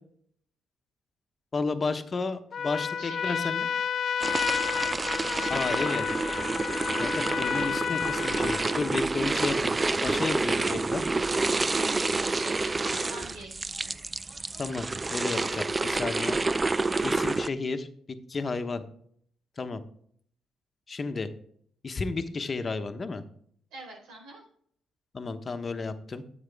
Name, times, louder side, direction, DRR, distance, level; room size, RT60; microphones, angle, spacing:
voice 1, 1.5-3.6 5.5-6.1 7.0-11.0 14.6-16.4 17.0-18.8 19.6-19.8 20.9-21.3 21.8-23.2 25.1-26.2, left 4 dB, 35° left, 8 dB, 1.1 m, -32 dB
Trumpet, 2.5-9.0, left 7 dB, 55° left, 0.3 m, -31 dB
voice 2, 3.0-3.6 5.3-6.0 6.3-6.5 7.5-7.7 10.5-10.9 11.5-13.9 23.7-24.5, right 2 dB, 90° right, -1 dB, 4.3 m, -43 dB
sound 1, 4.2-17.5, right 3 dB, 25° right, 0.4 m, -28 dB
9.4 x 8.1 x 3.5 m, 0.62 s
cardioid pair, 90°, 0 cm